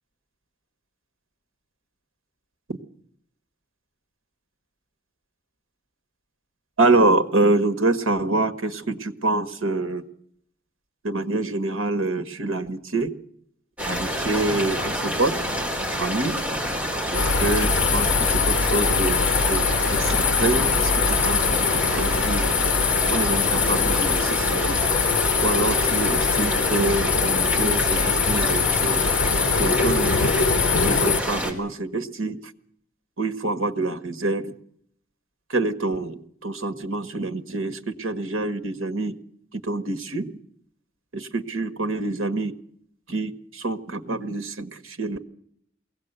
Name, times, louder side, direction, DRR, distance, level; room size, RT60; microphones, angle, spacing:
voice 1, 6.8-10.0 11.0-13.1 13.9-15.3 15.9-16.4 17.1-22.4 23.1-24.8 25.4-29.1 29.6-30.1 30.8-32.4 33.2-34.5 35.5-39.2 39.6-40.3 41.1-42.5 43.1-45.2, right 2 dB, 80° right, 9 dB, 1.5 m, -26 dB
sound 1, 13.8-31.5, equal, 5° right, 3.5 m, -28 dB
sound 2, 17.1-31.2, left 5 dB, 60° left, 1.0 m, -22 dB
22.5 x 17.5 x 8.1 m, 0.68 s
head